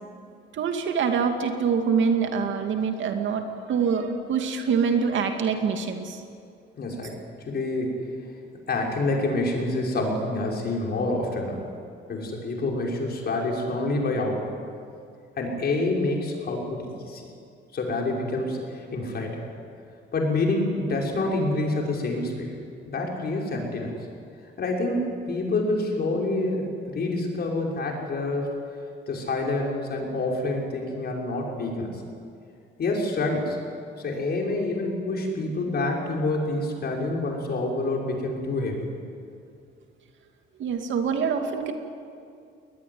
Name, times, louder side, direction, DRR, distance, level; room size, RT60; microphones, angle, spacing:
voice 1, 0.5-6.2 40.6-41.7, right 6 dB, 75° right, 5 dB, 2.6 m, -25 dB
voice 2, 6.8-7.2 7.5-8.1 8.7-11.6 12.1-14.6 15.4-17.3 17.7-19.4 20.1-22.5 22.9-24.0 24.6-26.7 26.9-28.5 29.1-31.9 32.8-33.6 34.0-38.8, left 2 dB, 55° left, -1 dB, 5.9 m, -27 dB
21.5 x 20.0 x 9.7 m, 2.4 s
cardioid pair, 90°, 20 cm